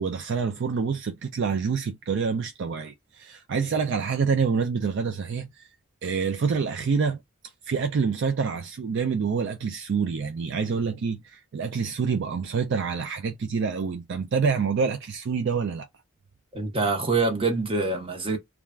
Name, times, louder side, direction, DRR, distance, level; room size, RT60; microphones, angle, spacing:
voice 1, 0.0-5.7 6.0-7.2 7.6-15.9, right 5 dB, 60° right, 0.4 m, -27 dB
voice 2, 16.5-18.4, right 3 dB, 25° right, 0.9 m, -25 dB
3.2 x 2.4 x 2.3 m
head